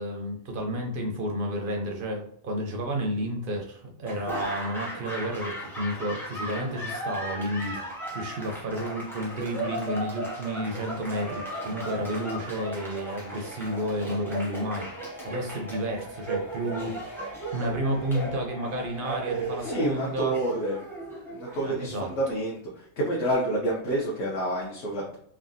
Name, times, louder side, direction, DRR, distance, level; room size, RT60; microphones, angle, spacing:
voice 1, 0.0-20.4 21.6-22.1, equal, 65° right, 2 dB, 0.5 m, -31 dB
Laughter / Applause, 4.0-22.1, right 2 dB, 5° left, 0.3 m, -36 dB
sound 1, 5.8-19.9, left 2 dB, 85° left, 1.4 m, -47 dB
voice 2, 19.6-20.8 21.3-25.2, right 1 dB, 65° left, -3 dB, 0.9 m, -28 dB
3.4 x 2.1 x 2.5 m, 0.68 s
omnidirectional pair, 1.4 m